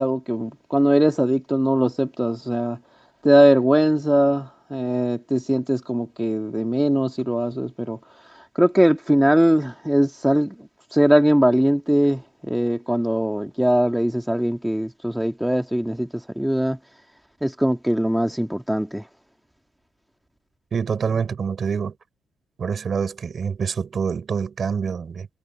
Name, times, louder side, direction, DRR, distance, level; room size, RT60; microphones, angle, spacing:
voice 1, 0.0-2.8 3.2-8.0 8.3-16.8 17.4-19.0, equal, 5° right, 1.8 m, -20 dB
voice 2, 20.7-21.9 22.6-25.3, right 6 dB, 45° right, 4.5 m, -26 dB
cardioid pair, 90°, 0 cm